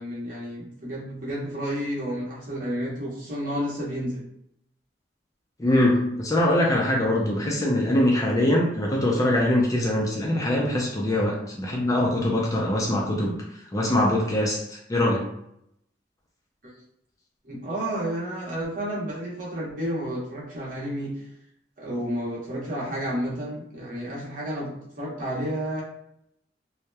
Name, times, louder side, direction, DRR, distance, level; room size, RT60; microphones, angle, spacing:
voice 1, 0.0-4.2 17.4-21.2 21.8-25.8, equal, 50° right, -6 dB, 0.9 m, -31 dB
voice 2, 5.6-13.3 13.7-15.2, left 1 dB, 20° left, -2 dB, 0.4 m, -23 dB
2.8 x 2.0 x 2.2 m, 0.76 s
head